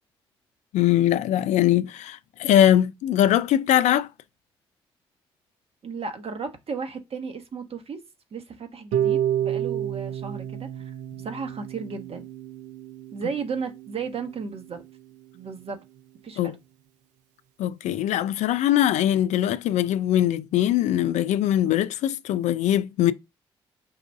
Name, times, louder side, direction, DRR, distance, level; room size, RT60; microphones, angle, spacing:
voice 1, 0.7-4.1 16.4-16.6 17.6-23.1, left 12 dB, 65° left, 0.4 m, -21 dB
voice 2, 5.8-8.0 8.3-10.8 11.2-12.2 13.1-14.8 15.3-15.8 16.2-16.4, right 5 dB, 50° right, 1.3 m, -34 dB
Harp, 8.9-15.0, right 10 dB, 75° right, 0.5 m, -30 dB
4.8 x 2.5 x 3.5 m
hypercardioid pair, 45°, 13 cm